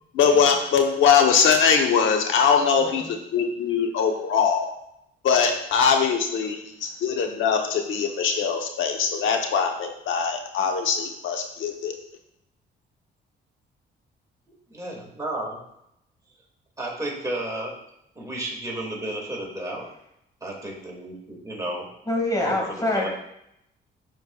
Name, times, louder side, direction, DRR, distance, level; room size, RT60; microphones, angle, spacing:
voice 1, 0.1-4.7 5.2-11.9, left 6 dB, 75° left, 4 dB, 1.0 m, -22 dB
voice 2, 2.6-3.1 22.1-23.1, left 1 dB, 20° left, 0 dB, 2.0 m, -26 dB
voice 3, 14.7-15.6 16.8-17.7 18.2-19.8 20.4-21.9 22.4-23.1, right 1 dB, 15° right, -2 dB, 2.2 m, -32 dB
11.0 x 4.5 x 2.4 m, 0.79 s
cardioid pair, 90°, 20 cm